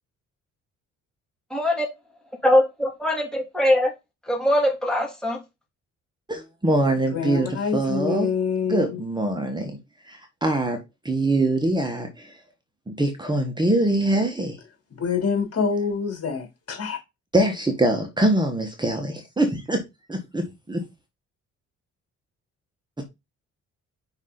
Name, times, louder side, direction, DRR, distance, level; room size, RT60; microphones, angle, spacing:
voice 1, 1.5-1.9 2.4-3.9 4.3-5.4, left 1 dB, ahead, 2.8 m, -21 dB
voice 2, 6.3-8.3 8.7-9.8 10.1-12.4 12.9-14.6 17.3-19.8 20.1-20.8, right 1 dB, 15° right, 1.3 m, -23 dB
voice 3, 7.1-9.0 15.0-17.0, left 6 dB, 50° left, 3.2 m, -26 dB
5.6 x 4.8 x 3.9 m
cardioid pair, 90°, 30 cm